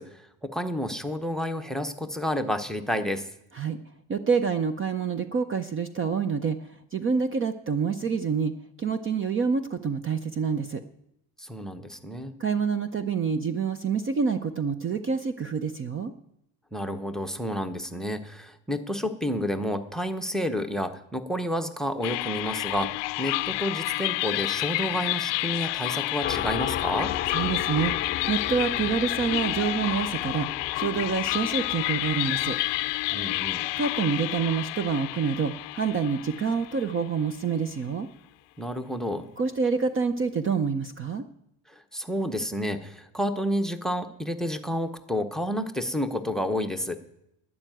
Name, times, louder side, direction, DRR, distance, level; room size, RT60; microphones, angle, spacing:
voice 1, 0.0-3.3 11.4-12.3 16.7-27.1 33.1-33.7 38.6-39.3 41.7-47.0, equal, ahead, 11 dB, 0.8 m, -30 dB
voice 2, 4.1-6.6 6.9-8.5 8.8-10.8 12.4-16.1 27.3-27.9 28.3-30.5 30.7-32.6 33.8-38.1 39.4-41.2, right 6 dB, 30° right, 11 dB, 0.6 m, -27 dB
sound 1, 22.0-37.3, left 21 dB, 75° left, 0.5 m, -30 dB
sound 2, 26.2-35.5, left 10 dB, 30° left, 0.5 m, -36 dB
12.0 x 9.8 x 9.2 m, 0.81 s
cardioid pair, 160°, 43 cm